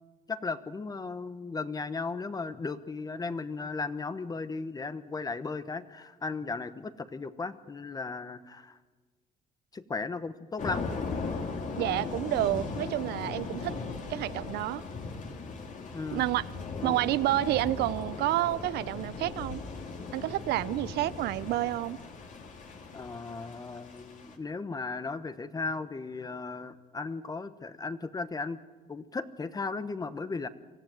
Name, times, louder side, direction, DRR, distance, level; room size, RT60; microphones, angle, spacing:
voice 1, 0.3-8.8 9.7-10.9 15.9-16.2 16.8-17.0 22.9-28.6 28.9-30.5, left 4 dB, 20° left, 1.0 m, -36 dB
Thunder / Rain, 10.6-24.4, left 4 dB, 50° left, 2.8 m, -38 dB
voice 2, 11.8-13.8 14.1-14.8 16.1-16.5 16.8-19.6 20.1-22.0, right 15 dB, 75° right, 0.6 m, -29 dB
24.0 x 15.0 x 9.2 m
cardioid pair, 110°, 17 cm